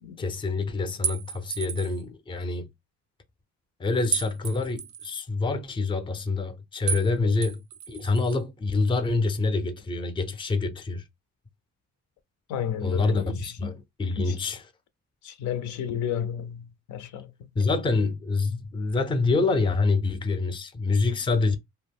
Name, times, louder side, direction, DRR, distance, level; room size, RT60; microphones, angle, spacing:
voice 1, 0.2-2.7 3.8-11.0 12.8-14.7 17.5-21.6, left 3 dB, 15° left, 0.4 m, -26 dB
sound 1, 1.0-2.0 4.1-5.1 6.9-7.1 7.4-8.4, right 7 dB, 65° right, 0.4 m, -32 dB
voice 2, 12.5-13.7 14.2-14.4 15.2-17.3, left 9 dB, 75° left, 0.5 m, -32 dB
2.3 x 2.1 x 3.4 m
cardioid pair, 90°, 30 cm